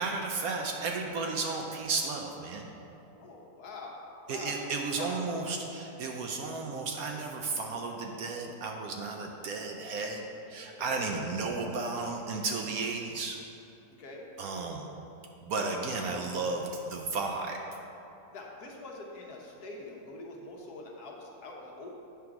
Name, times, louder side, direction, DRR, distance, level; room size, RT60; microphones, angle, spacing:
voice 1, 0.0-2.7 4.3-10.2 10.5-13.4 14.4-14.9 15.4-17.6, right 3 dB, 70° right, 2 dB, 1.0 m, -33 dB
voice 2, 3.2-3.9 4.2-4.6 5.0-5.2 10.9-11.1 14.0-14.2 18.3-21.9, left 3 dB, 70° left, -1 dB, 1.4 m, -44 dB
8.6 x 3.7 x 5.9 m, 2.9 s
omnidirectional pair, 1.8 m